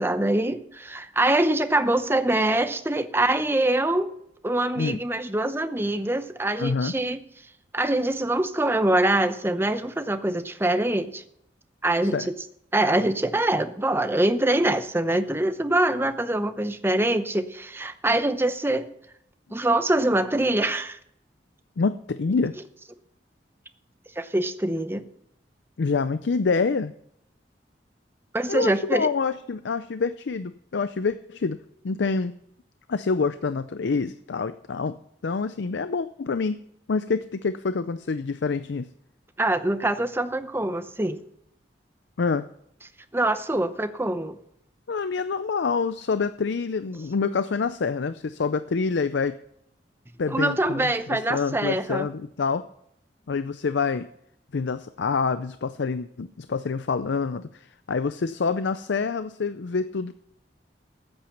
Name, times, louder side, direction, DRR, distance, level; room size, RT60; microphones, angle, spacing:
voice 1, 0.0-4.1 4.4-7.2 7.7-11.2 11.8-12.2 12.7-18.9 19.5-21.0 24.2-25.0 28.3-29.1 39.4-41.2 43.1-44.4 50.3-52.1, right 1 dB, 15° right, 10 dB, 0.7 m, -24 dB
voice 2, 6.6-6.9 12.1-12.3 21.8-22.5 25.8-26.9 28.5-31.6 31.8-32.3 32.9-35.0 35.2-36.6 36.9-38.9 42.2-42.5 44.9-49.4 50.2-52.7 53.3-54.1 54.5-60.1, left 4 dB, 80° left, 12 dB, 0.5 m, -26 dB
14.0 x 8.8 x 5.8 m, 0.72 s
head